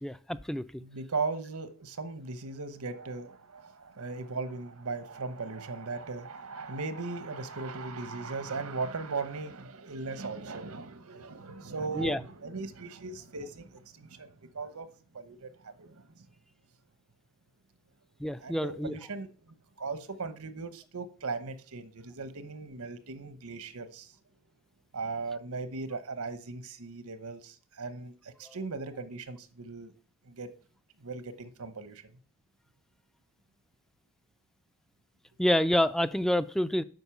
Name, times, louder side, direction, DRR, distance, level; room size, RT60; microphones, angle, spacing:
voice 1, 0.0-0.6 12.0-12.2 18.2-18.9 28.5-28.6 35.4-36.8, left 1 dB, ahead, 0.3 m, -27 dB
voice 2, 0.8-14.9 15.1-16.3 18.4-24.2 24.9-29.9 30.2-30.5 31.0-32.2, right 4 dB, 85° right, 1.1 m, -38 dB
7.9 x 5.5 x 7.1 m
head